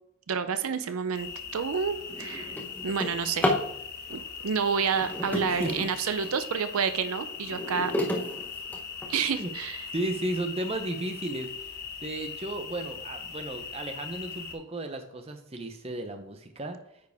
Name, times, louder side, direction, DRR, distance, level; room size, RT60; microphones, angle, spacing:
voice 1, 0.3-2.5 2.8-3.5 4.1-7.9 9.1-9.8, right 6 dB, 80° right, 11 dB, 0.5 m, -29 dB
sound 1, 1.1-14.6, left 6 dB, 45° left, 1.0 m, -40 dB
Drawer open or close, 1.1-1.3 1.8-3.7 4.8-6.4 6.9-9.4 10.0-10.1 10.6-10.7 11.1-11.4, left 1 dB, 10° left, 0.9 m, -32 dB
voice 2, 5.5-5.9 9.0-9.5 9.9-11.7 12.0-16.8, right 1 dB, 25° right, 6 dB, 0.7 m, -34 dB
9.3 x 4.7 x 3.5 m, 0.78 s
head